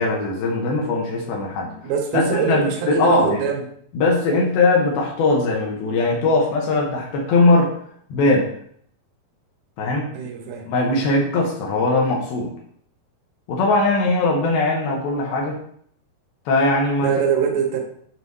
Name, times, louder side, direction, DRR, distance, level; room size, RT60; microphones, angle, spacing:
voice 1, 0.0-1.7 2.1-3.4 3.9-7.7 8.1-8.5 9.8-10.1 10.7-12.5 13.5-15.6 16.5-17.1, left 2 dB, 80° left, -1 dB, 2.8 m, -20 dB
voice 2, 1.6-3.6 10.1-10.7 17.0-17.8, right 7 dB, 85° right, 3 dB, 2.7 m, -23 dB
7.5 x 4.9 x 2.6 m, 0.64 s
omnidirectional pair, 4.3 m